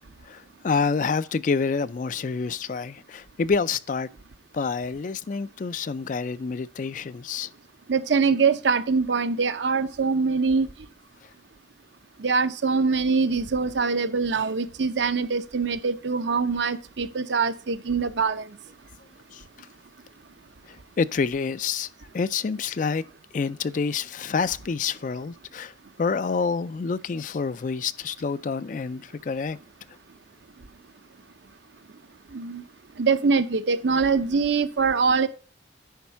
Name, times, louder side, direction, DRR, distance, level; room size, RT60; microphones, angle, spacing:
voice 1, 0.3-4.1 4.5-7.5 19.3-19.4 21.0-21.9 22.1-23.0 23.3-25.7 26.0-29.6, left 5 dB, 45° left, 0.3 m, -27 dB
voice 2, 7.9-10.7 12.2-18.4 32.3-32.6 33.0-35.3, right 4 dB, 70° right, 0.7 m, -23 dB
10.5 x 4.3 x 5.5 m
head